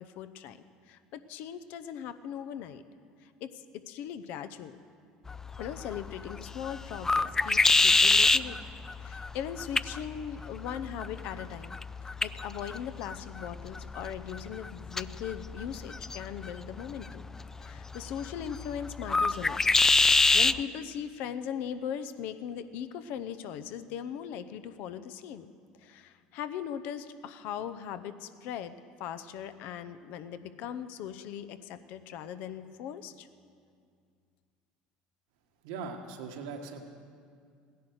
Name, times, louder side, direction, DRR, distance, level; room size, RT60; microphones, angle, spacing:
voice 1, 0.2-0.6 0.9-2.8 3.2-4.8 5.6-8.6 9.0-11.8 12.2-17.2 17.6-19.6 20.1-25.5 25.8-33.3, left 9 dB, 70° left, 11 dB, 0.7 m, -39 dB
sound 1, 5.3-20.6, left 3 dB, 15° left, 0.3 m, -28 dB
voice 2, 35.6-36.9, right 5 dB, 80° right, 3 dB, 1.5 m, -40 dB
16.0 x 10.5 x 6.4 m, 2.2 s
supercardioid pair, 95°, 3 cm